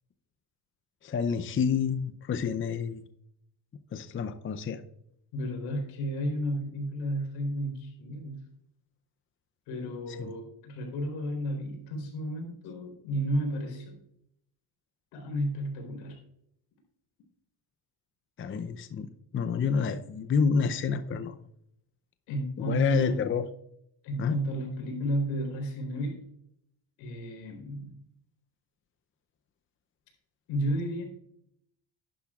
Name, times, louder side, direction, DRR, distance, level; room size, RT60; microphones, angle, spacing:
voice 1, 1.0-3.0 3.9-4.8 10.1-10.3 18.4-21.3 22.6-23.5 24.2-24.4, left 6 dB, 30° left, 10 dB, 0.6 m, -29 dB
voice 2, 5.3-8.4 9.7-14.0 15.1-16.2 22.3-23.2 24.0-26.2 27.0-27.9 30.5-31.0, equal, 85° left, 1 dB, 4.0 m, -32 dB
11.5 x 10.0 x 2.4 m, 0.73 s
supercardioid pair, 85°, 44 cm